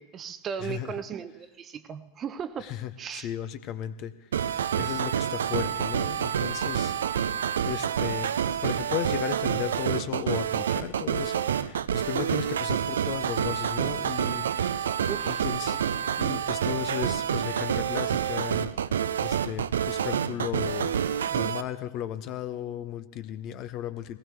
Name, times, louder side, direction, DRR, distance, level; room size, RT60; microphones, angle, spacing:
voice 1, 0.0-2.7 3.0-3.3 15.1-15.4, right 7 dB, 25° right, 0.8 m, -36 dB
voice 2, 0.6-0.9 2.6-6.9 7.6-14.5 14.9-15.8 16.2-20.9 21.2-24.2, left 11 dB, 40° left, 0.8 m, -35 dB
sound 1, 4.3-21.6, right 8 dB, 65° right, 0.5 m, -28 dB
21.5 x 18.5 x 3.4 m
figure-of-eight pair, 90°, 0 cm